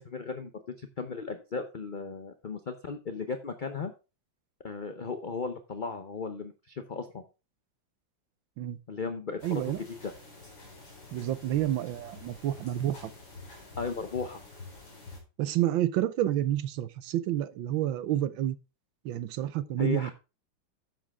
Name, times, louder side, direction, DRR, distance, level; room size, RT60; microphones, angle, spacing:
voice 1, 0.0-3.9 4.6-7.2 8.9-9.6 9.9-10.1 13.8-14.4 19.8-20.1, left 4 dB, 50° left, 0.5 m, -36 dB
sound 1, 9.4-15.2, left 3 dB, 70° left, 4.6 m, -48 dB
voice 2, 9.4-9.8 11.1-13.1 15.4-18.6 19.0-20.1, right 12 dB, 85° right, 1.5 m, -29 dB
10.5 x 7.5 x 3.6 m
omnidirectional pair, 2.1 m